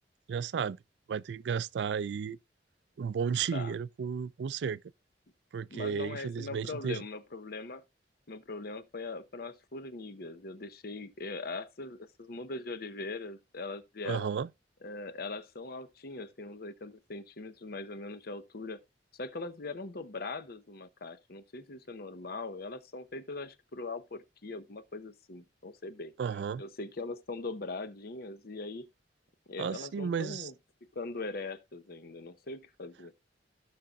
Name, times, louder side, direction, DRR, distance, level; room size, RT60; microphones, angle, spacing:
voice 1, 0.3-0.8 1.1-2.4 3.0-4.8 5.5-7.0 14.0-14.5 26.2-26.6 29.6-30.5, right 6 dB, 70° right, 0.4 m, -33 dB
voice 2, 5.7-7.8 8.3-14.3 14.8-18.8 19.1-26.1 26.6-28.9 29.5-30.5 30.9-33.1, left 3 dB, 60° left, 0.9 m, -41 dB
16.0 x 5.6 x 2.4 m
head